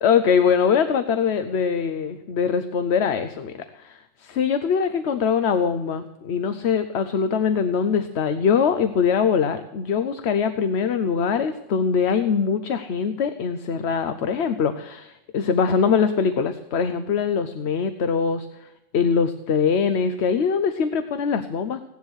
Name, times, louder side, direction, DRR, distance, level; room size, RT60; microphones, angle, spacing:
voice 1, 0.0-18.7 18.9-21.8, left 6 dB, 60° left, 10 dB, 1.0 m, -22 dB
16.5 x 10.5 x 6.3 m, 0.94 s
omnidirectional pair, 1.3 m